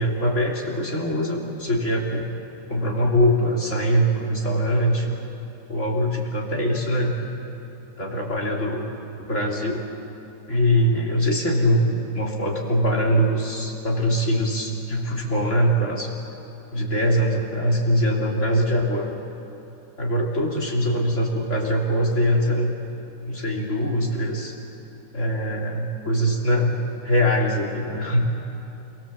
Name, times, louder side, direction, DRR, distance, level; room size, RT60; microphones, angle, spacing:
voice 1, 0.0-2.3 2.7-5.2 5.7-7.2 8.0-8.9 9.3-9.8 10.5-16.1 16.7-19.1 20.0-22.7 23.3-24.5 25.1-26.7 27.0-28.3, equal, 55° left, -1 dB, 3.6 m, -22 dB
28.0 x 23.0 x 7.6 m, 2.9 s
omnidirectional pair, 1.5 m